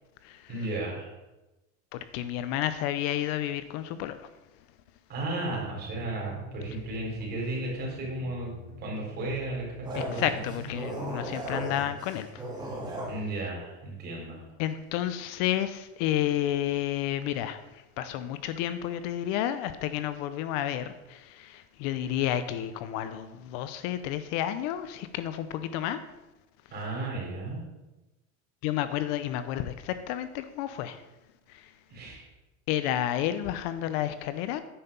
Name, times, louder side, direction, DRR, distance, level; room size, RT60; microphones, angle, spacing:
voice 1, 0.5-1.1 5.1-10.3 13.1-14.4 26.7-27.6 31.9-32.2, right 2 dB, 30° right, -3 dB, 4.2 m, -34 dB
voice 2, 1.9-4.3 9.9-12.4 14.6-17.6 18.0-26.0 28.6-31.0 31.5-31.7 32.7-34.6, left 12 dB, 55° left, 12 dB, 0.7 m, -31 dB
sound 1, 5.5-10.8, left 3 dB, 5° left, 2.5 m, -45 dB
sound 2, 9.8-13.2, right 1 dB, 10° right, 2.3 m, -36 dB
9.8 x 5.7 x 6.8 m, 1.0 s
supercardioid pair, 155°, 34 cm